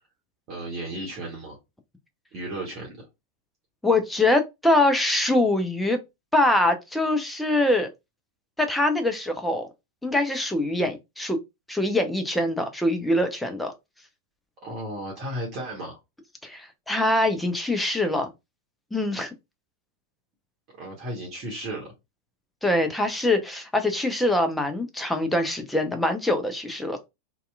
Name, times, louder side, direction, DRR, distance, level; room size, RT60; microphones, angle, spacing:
voice 1, 0.5-1.6 2.3-3.1 14.6-16.0 20.8-21.9, right 1 dB, 35° right, 1.0 m, -34 dB
voice 2, 3.8-6.0 6.3-7.9 8.6-9.7 10.0-11.4 11.7-13.7 16.4-18.3 18.9-19.3 22.6-27.1, left 1 dB, 5° left, 0.5 m, -23 dB
2.7 x 2.3 x 2.3 m
figure-of-eight pair, 90°, 0 cm